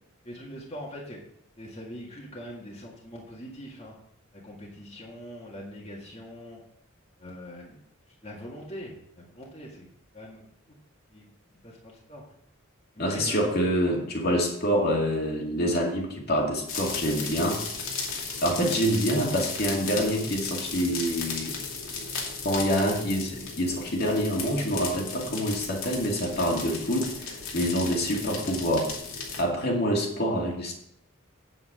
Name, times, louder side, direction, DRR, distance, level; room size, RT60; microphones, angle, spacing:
voice 1, 0.2-1.2 1.6-3.9 4.4-6.6 7.2-7.8 8.2-9.9 10.1-10.5 11.1-11.2 11.6-12.2 13.0-13.5 14.2-14.4, equal, 30° left, -4 dB, 1.9 m, -42 dB
voice 2, 13.0-17.6 18.4-21.6 22.4-28.9 29.4-30.7, equal, 50° left, -1 dB, 2.2 m, -26 dB
sound 1, 16.7-29.4, left 5 dB, 85° left, 2.5 m, -35 dB
8.6 x 8.0 x 4.9 m, 0.73 s
head